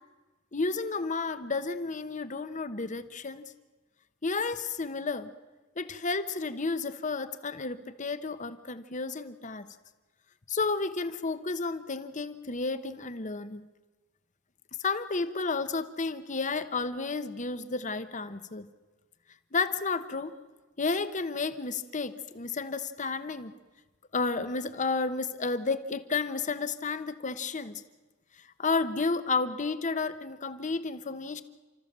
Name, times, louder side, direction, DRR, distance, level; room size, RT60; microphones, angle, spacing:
voice 1, 0.5-3.4 4.2-5.3 5.8-9.7 10.5-13.7 14.8-18.7 19.5-20.3 20.8-23.5 24.1-27.8 28.6-31.4, left 4 dB, 40° left, 12 dB, 1.0 m, -32 dB
30.0 x 13.5 x 7.4 m, 1.2 s
head